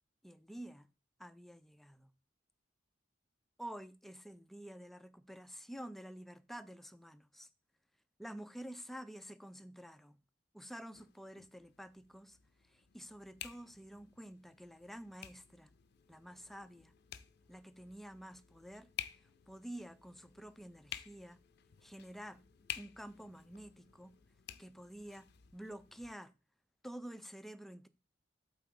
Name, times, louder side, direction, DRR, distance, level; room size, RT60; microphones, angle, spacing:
voice 1, 0.2-0.9 1.2-2.1 3.6-7.5 8.2-10.2 10.5-15.7 16.1-16.9 17.5-21.4 21.8-22.4 22.8-24.2 24.6-26.3 26.8-27.9, right 1 dB, ahead, 0.4 m, -50 dB
sound 1, 10.9-26.1, left 11 dB, 60° left, 0.5 m, -52 dB
Telephone, 15.9-24.3, left 10 dB, 30° right, 1.8 m, -78 dB
7.8 x 3.9 x 4.7 m
head